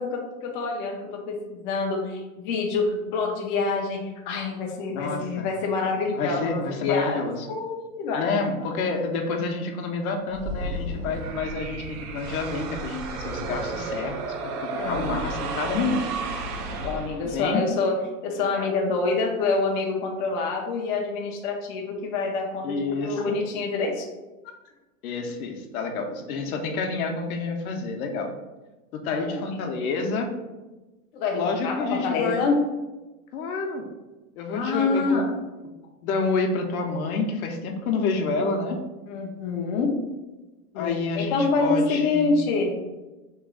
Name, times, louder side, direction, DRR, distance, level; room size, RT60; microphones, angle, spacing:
voice 1, 0.0-8.5 14.7-15.1 16.7-24.1 29.1-29.4 31.1-32.6 34.5-35.3 39.1-39.9 40.7-42.7, left 3 dB, 35° left, 1 dB, 0.4 m, -27 dB
voice 2, 4.9-5.5 6.1-7.5 8.1-16.1 17.3-17.6 22.6-23.4 25.0-28.3 28.9-30.3 31.3-32.4 33.3-33.9 34.4-35.2 36.0-38.8 40.8-42.4, left 4 dB, 70° left, 3 dB, 0.7 m, -28 dB
sound 1, 10.3-17.5, right 3 dB, 90° right, 0.6 m, -32 dB
3.0 x 2.3 x 3.6 m, 1.1 s
supercardioid pair, 145°, 44 cm